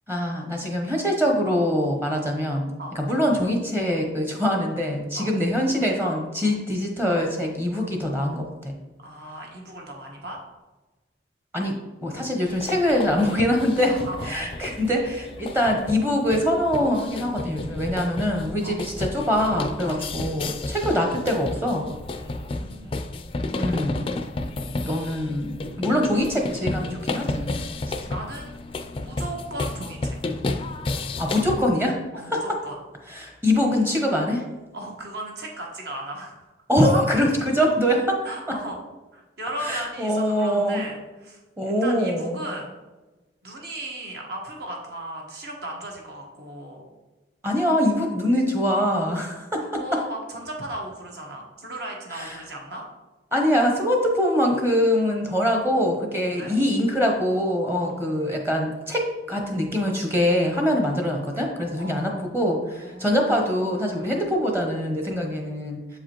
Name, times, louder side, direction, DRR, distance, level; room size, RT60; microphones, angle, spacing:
voice 1, 0.1-2.7 3.0-8.7 11.5-11.8 12.0-13.9 14.2-21.9 23.6-24.1 24.9-27.6 31.2-32.0 32.3-32.4 33.1-34.4 36.7-38.2 39.7-40.9 41.6-42.4 47.4-50.0 52.1-52.4 53.3-59.0 59.3-66.0, equal, 15° right, 2 dB, 0.8 m, -23 dB
voice 2, 9.0-10.4 13.9-14.3 18.6-18.8 19.8-20.0 22.1-23.0 24.3-24.9 27.8-28.6 29.0-30.2 32.1-32.8 34.7-36.5 38.2-38.8 39.1-42.7 43.4-46.8 49.6-52.8 56.3-56.6 57.8-58.0 60.8-60.9 61.7-62.1 62.8-63.2, right 1 dB, 65° right, 0 dB, 1.3 m, -37 dB
sound 1, 12.5-31.6, left 2 dB, 30° left, 0.3 m, -32 dB
7.4 x 4.8 x 3.0 m, 1.2 s
head